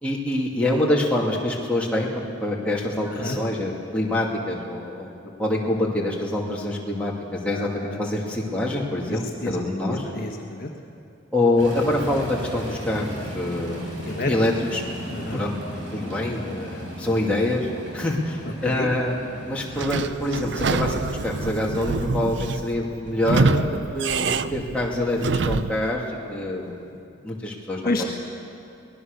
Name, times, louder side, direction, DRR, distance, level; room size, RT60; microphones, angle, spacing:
voice 1, 0.0-5.1 5.4-10.1 11.3-14.8 15.3-15.5 15.9-17.7 17.9-19.1 19.5-26.9 27.2-28.1, left 1 dB, 5° left, -4 dB, 2.5 m, -25 dB
voice 2, 7.5-8.0 9.1-9.6 9.9-10.7 14.1-14.3 15.1-15.4 18.4-18.9 27.8-28.1, left 2 dB, 45° left, 1 dB, 1.4 m, -30 dB
sound 1, 11.6-25.7, equal, 85° right, 6.3 m, -38 dB
Sliding door / Squeak, 19.8-25.9, right 4 dB, 65° right, 0.5 m, -26 dB
24.0 x 19.0 x 6.7 m, 2.6 s
head